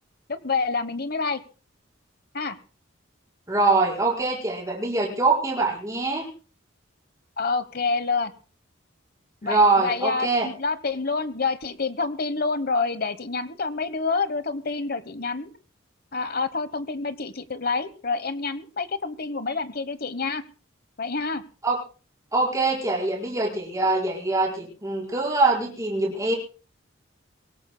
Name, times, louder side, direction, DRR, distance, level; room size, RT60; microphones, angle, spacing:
voice 1, 0.3-1.4 2.3-2.6 7.4-8.3 9.4-15.5 16.1-20.4 21.0-21.4, left 4 dB, 50° left, 13 dB, 1.1 m, -27 dB
voice 2, 3.5-6.3 9.4-10.5 21.6-21.8 22.3-26.3, right 3 dB, 15° right, -2 dB, 5.1 m, -23 dB
24.0 x 18.5 x 2.3 m, 0.36 s
head